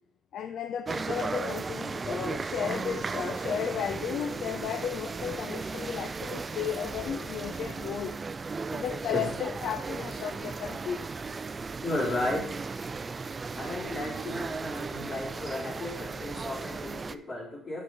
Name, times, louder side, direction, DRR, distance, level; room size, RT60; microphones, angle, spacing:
voice 1, 0.3-8.2 8.7-11.0, left 9 dB, 70° left, 9 dB, 0.5 m, -34 dB
sound 1, 0.9-17.1, right 4 dB, 35° right, 0.4 m, -36 dB
voice 2, 11.8-12.7 13.5-17.8, left 1 dB, 50° left, -4 dB, 3.7 m, -34 dB
6.2 x 5.5 x 5.8 m, 0.67 s
cardioid pair, 90°, 0 cm